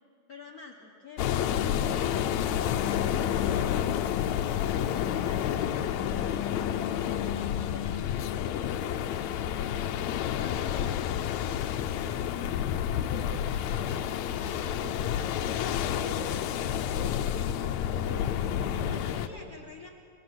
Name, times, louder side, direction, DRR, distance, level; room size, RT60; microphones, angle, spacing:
voice 1, 0.3-2.4 2.8-4.1 4.4-5.9 6.2-7.0 7.4-8.7 9.2-12.2 18.0-18.1 18.9-19.9, left 5 dB, 50° left, 0 dB, 1.0 m, -47 dB
sound 1, 1.2-19.3, left 10 dB, 75° left, 1.9 m, -29 dB
voice 2, 13.0-14.1 14.4-19.2, equal, 5° right, 0 dB, 1.8 m, -45 dB
24.0 x 21.5 x 6.0 m, 2.4 s
omnidirectional pair, 3.6 m